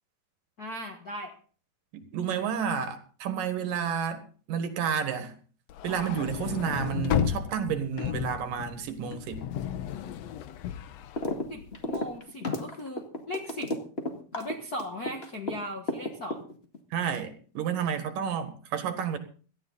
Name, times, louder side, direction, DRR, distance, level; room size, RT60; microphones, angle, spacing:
voice 1, 0.6-1.3 11.5-13.7 14.3-16.4, left 1 dB, 50° left, 1.1 m, -38 dB
voice 2, 1.9-4.2 4.5-5.3 5.8-9.4 16.9-19.2, right 8 dB, 70° right, 3.1 m, -30 dB
sound 1, 5.7-12.0, left 10 dB, 80° left, 1.5 m, -33 dB
sound 2, 11.2-11.4 11.7-15.5 15.9-16.8, left 1 dB, 25° left, 1.3 m, -32 dB
17.5 x 13.0 x 4.0 m
omnidirectional pair, 4.1 m